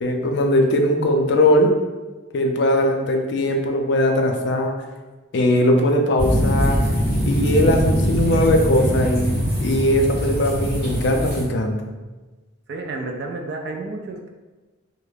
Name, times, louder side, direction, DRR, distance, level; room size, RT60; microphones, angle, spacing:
voice 1, 0.0-1.7 2.3-4.7 5.3-6.8 7.2-11.9, left 1 dB, 55° left, 3 dB, 0.3 m, -19 dB
sound 1, 6.2-11.4, equal, 5° right, 1.0 m, -22 dB
voice 2, 12.7-14.3, right 3 dB, 55° right, 3 dB, 0.3 m, -31 dB
2.3 x 2.0 x 3.2 m, 1.2 s
head